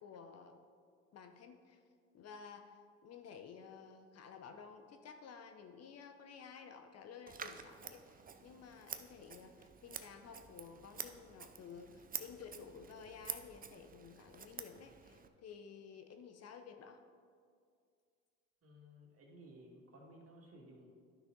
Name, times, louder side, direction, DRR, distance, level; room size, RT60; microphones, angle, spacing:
voice 1, 0.0-0.6 1.1-1.8 2.1-17.0, left 6 dB, 45° left, 7 dB, 0.8 m, -53 dB
Scissors, 7.3-15.3, right 6 dB, 25° right, 0.6 m, -49 dB
voice 2, 18.6-20.9, right 1 dB, 40° right, -2 dB, 2.3 m, -57 dB
10.5 x 6.1 x 3.9 m, 2.2 s
hypercardioid pair, 75°, 35 cm